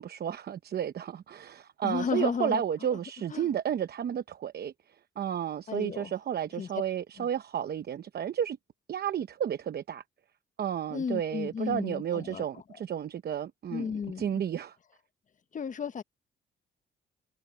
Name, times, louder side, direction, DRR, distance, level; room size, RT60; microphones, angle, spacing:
voice 1, 0.0-4.7 5.2-8.6 8.9-10.0 10.6-13.9 14.2-14.8, right 9 dB, 55° right, 0.9 m, -32 dB
voice 2, 1.8-2.6 3.3-3.5 5.7-6.1 6.6-6.7 7.2-7.3 10.9-12.6 13.7-14.3 15.5-16.0, left 6 dB, 40° left, 1.0 m, -33 dB
cardioid pair, 90°, 20 cm